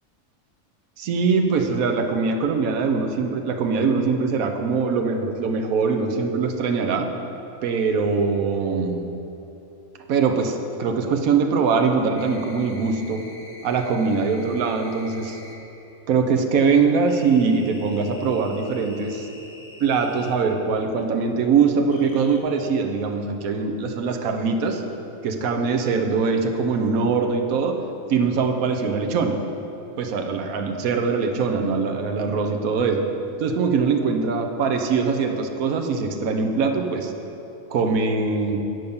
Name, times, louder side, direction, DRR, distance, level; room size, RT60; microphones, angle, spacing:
voice 1, 1.0-7.1 7.6-9.1 10.1-13.3 13.6-15.4 16.1-19.3 19.8-24.8 25.2-27.8 28.1-29.4 30.0-33.0 33.4-37.1 37.7-38.7, right 5 dB, 85° right, 4 dB, 1.2 m, -22 dB
sound 1, 12.1-15.6 17.1-20.4 21.9-22.4, left 1 dB, 80° left, 1.4 m, -45 dB
9.4 x 5.3 x 6.9 m, 3.0 s
omnidirectional pair, 1.4 m